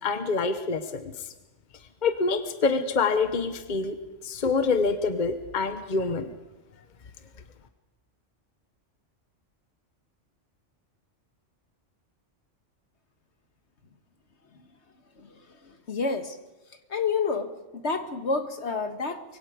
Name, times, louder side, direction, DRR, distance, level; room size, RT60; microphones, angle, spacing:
voice 1, 0.0-1.1 2.0-4.0 4.2-6.3, left 4 dB, 40° left, 8 dB, 1.2 m, -26 dB
voice 2, 15.2-16.4 16.9-19.2, left 4 dB, 65° left, 7 dB, 1.8 m, -29 dB
25.0 x 22.5 x 5.1 m, 1.1 s
omnidirectional pair, 1.2 m